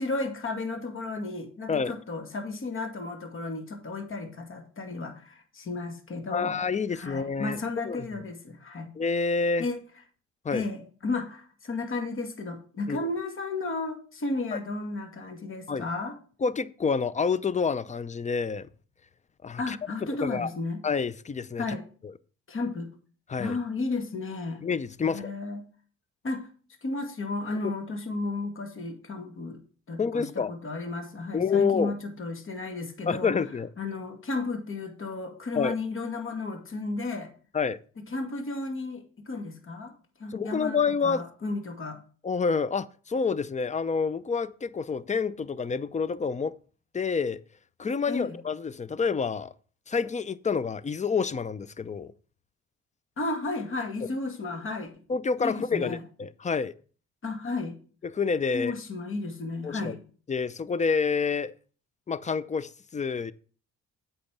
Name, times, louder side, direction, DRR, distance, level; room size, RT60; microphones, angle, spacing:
voice 1, 0.0-6.6 6.9-8.9 9.6-9.8 10.5-16.2 19.6-20.8 21.6-21.8 22.5-22.9 23.4-24.6 25.0-25.6 26.2-26.5 26.8-29.6 29.9-33.3 33.8-37.3 38.0-39.9 40.2-42.0 48.1-48.4 53.2-54.9 55.4-56.0 57.2-57.7 58.5-60.0, left 3 dB, 45° left, 2.2 m, -33 dB
voice 2, 6.3-7.6 7.9-8.0 9.0-9.7 10.4-10.6 12.9-13.1 15.7-15.8 16.4-18.7 19.4-19.8 20.2-20.5 20.8-21.6 22.0-22.1 23.3-23.6 24.6-25.3 30.0-30.5 31.3-31.9 33.1-33.7 35.5-35.8 37.5-37.8 40.3-41.2 42.2-46.5 46.9-47.4 47.8-49.5 49.9-52.1 55.1-56.7 58.0-58.7 59.6-60.0 60.3-61.5 62.1-63.3, left 5 dB, 25° left, 0.6 m, -28 dB
8.5 x 5.6 x 5.9 m
cardioid pair, 90°, 30 cm